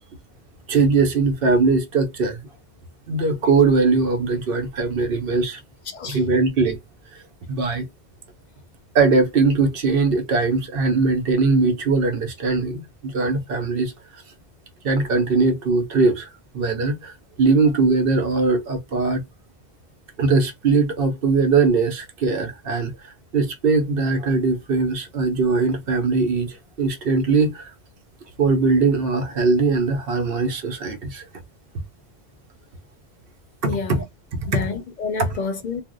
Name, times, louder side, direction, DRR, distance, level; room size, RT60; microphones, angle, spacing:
voice 1, 0.7-2.4 3.1-5.6 6.1-6.8 7.5-7.9 8.9-13.9 14.8-16.3 16.5-19.2 20.2-22.9 23.3-27.7 28.4-31.2 33.6-34.0 34.3-34.4, right 4 dB, 70° right, 0.9 m, -20 dB
voice 2, 5.9-6.3 33.6-34.0 34.5-35.8, left 4 dB, 55° left, 0.6 m, -29 dB
2.5 x 2.1 x 3.7 m
omnidirectional pair, 1.0 m